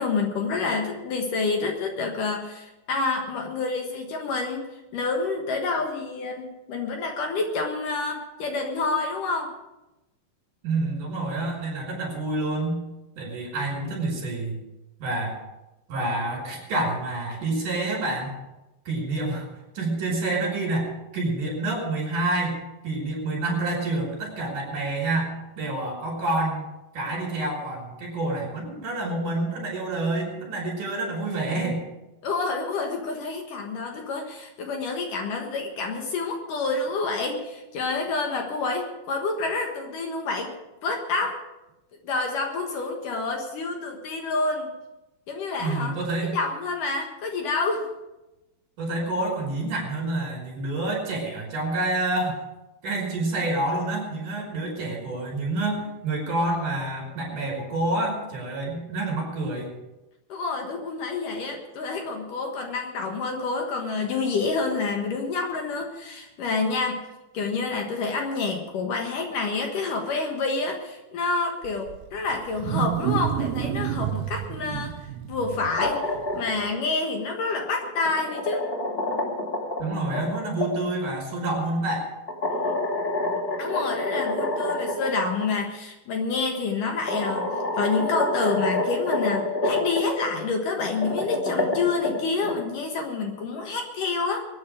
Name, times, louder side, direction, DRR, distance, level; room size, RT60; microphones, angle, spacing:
voice 1, 0.0-4.7 4.9-9.5 32.2-40.5 40.8-41.4 42.0-44.7 45.3-46.0 46.3-47.9 60.3-67.0 67.3-76.1 76.3-78.7 83.6-94.5, left 3 dB, 65° left, 3 dB, 2.8 m, -28 dB
voice 2, 10.6-12.8 13.2-14.6 15.0-15.3 15.9-18.4 18.8-19.5 19.7-22.6 22.8-26.7 26.9-31.8 45.6-46.4 48.8-52.4 52.8-59.7 79.8-82.1, right 2 dB, 55° right, 0 dB, 6.5 m, -28 dB
Wild animals, 71.6-76.7, right 12 dB, 85° right, 2.5 m, -30 dB
sound 1, 75.5-76.7 77.8-80.7 82.3-85.1 85.4-85.5 86.5-86.6 87.1-90.0 90.8-92.5, left 2 dB, 20° left, 2.3 m, -27 dB
23.5 x 9.6 x 5.0 m, 0.99 s
omnidirectional pair, 4.5 m